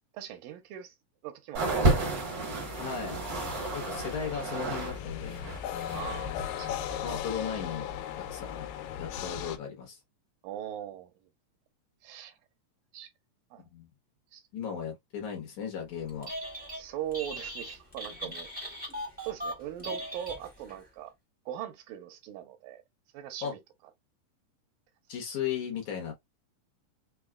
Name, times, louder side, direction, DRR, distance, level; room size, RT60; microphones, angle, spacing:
voice 1, 0.1-1.0 1.2-2.0 5.9-6.8 10.4-11.1 12.0-12.3 12.9-13.1 13.5-13.6 14.3-14.4 16.7-18.5 19.3-21.1 21.5-22.8 23.1-23.6, right 11 dB, 85° right, 2.4 m, -40 dB
sound 1, 1.5-5.0 5.2-6.1 6.9-7.0, right 2 dB, 70° right, 1.1 m, -31 dB
sound 2, 2.3-9.6, left 9 dB, 85° left, 2.3 m, -38 dB
voice 2, 2.8-3.2 3.7-5.4 7.0-7.9 8.3-8.7 9.0-10.0 13.7-13.9 14.5-16.3 18.2-18.3 23.4-23.5 25.1-26.1, left 7 dB, 65° left, 2.1 m, -36 dB
Telephone, 16.1-16.8 17.1-20.8, equal, 10° right, 0.5 m, -39 dB
5.6 x 2.2 x 2.2 m
omnidirectional pair, 4.0 m